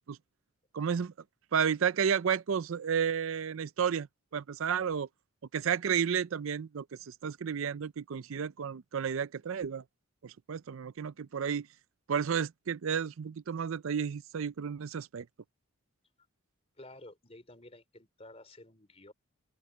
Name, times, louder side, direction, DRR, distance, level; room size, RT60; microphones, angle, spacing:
voice 1, 0.7-1.1 1.5-4.1 4.3-5.1 5.5-9.8 10.2-11.7 12.1-15.3, right 7 dB, 65° right, 0.4 m, -32 dB
voice 2, 16.8-19.1, left 1 dB, 30° left, 3.5 m, -52 dB
open air
head